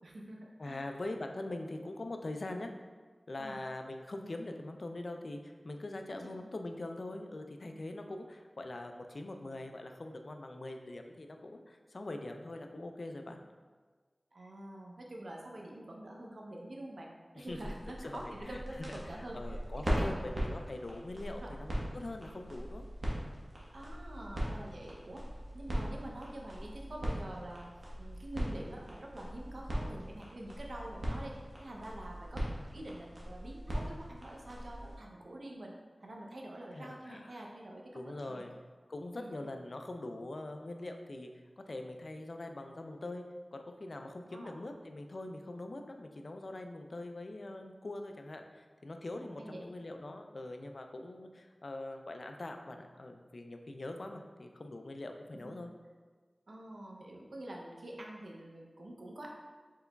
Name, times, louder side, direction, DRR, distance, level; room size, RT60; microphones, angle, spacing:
voice 1, 0.0-0.9 3.4-3.6 6.2-6.3 14.3-17.1 17.4-19.6 19.8-20.2 21.2-21.6 23.7-25.2 25.5-27.7 28.0-32.4 32.7-38.5 39.1-39.3 44.3-44.5 49.3-49.6 55.3-55.5 56.5-59.3, right 1 dB, 80° right, -1 dB, 0.6 m, -46 dB
voice 2, 0.6-2.7 3.3-13.4 17.3-17.8 18.0-22.8 25.7-25.9 36.7-37.4 37.9-38.5 38.9-41.3 41.7-43.2 43.5-55.7, left 2 dB, 70° left, 5 dB, 0.3 m, -43 dB
sound 1, 17.4-35.0, equal, 50° right, 1.0 m, -40 dB
4.5 x 3.9 x 2.2 m, 1.4 s
wide cardioid pair, 45°, 0 cm